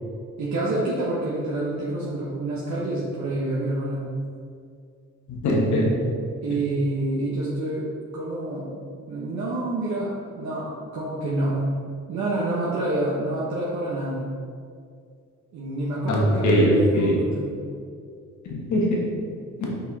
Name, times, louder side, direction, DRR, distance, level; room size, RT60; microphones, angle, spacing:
voice 1, 0.4-4.1 6.4-7.9 8.1-8.7 9.1-11.6 12.1-14.2 15.5-17.6, right 2 dB, 65° right, -6 dB, 1.2 m, -27 dB
voice 2, 5.3-5.9 16.1-17.2 18.4-19.0, equal, 70° left, -2 dB, 1.5 m, -21 dB
5.4 x 4.9 x 4.1 m, 2.2 s
cardioid pair, 90°, 30 cm